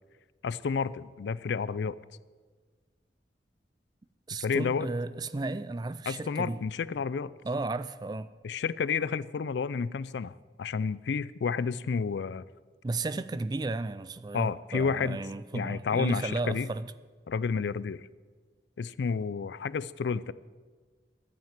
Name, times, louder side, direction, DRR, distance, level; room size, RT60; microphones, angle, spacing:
voice 1, 0.4-2.0 4.4-4.9 6.1-7.3 8.4-10.3 10.6-12.4 14.3-15.2 15.5-16.7 17.3-18.0 18.8-20.3, left 5 dB, 75° left, 0.4 m, -30 dB
voice 2, 4.3-6.6 7.4-8.3 12.8-16.9, right 3 dB, 20° right, 0.3 m, -34 dB
11.5 x 9.1 x 7.3 m
head